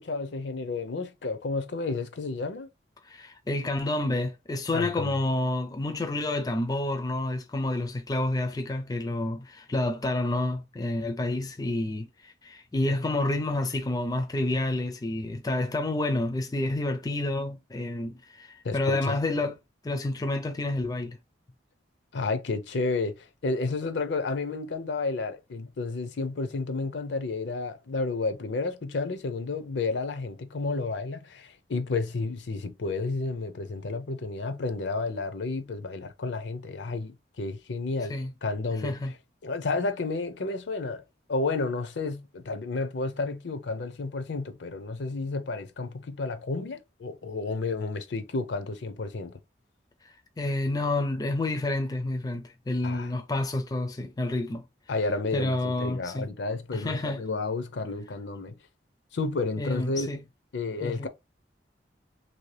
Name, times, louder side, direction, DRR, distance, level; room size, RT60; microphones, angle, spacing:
voice 1, 0.0-2.7 4.7-5.1 18.6-19.2 22.1-38.1 38.4-38.9 39.4-41.0 41.3-49.4 52.8-53.1 54.9-58.6 59.1-60.1 60.5-61.1, left 3 dB, 75° left, 0.5 m, -31 dB
voice 2, 3.0-19.6 19.8-21.2 38.1-38.3 38.8-39.1 50.0-54.6 55.3-56.3 56.7-57.2 59.6-60.2 60.8-61.1, left 2 dB, 20° left, 0.4 m, -29 dB
2.9 x 2.7 x 3.2 m
head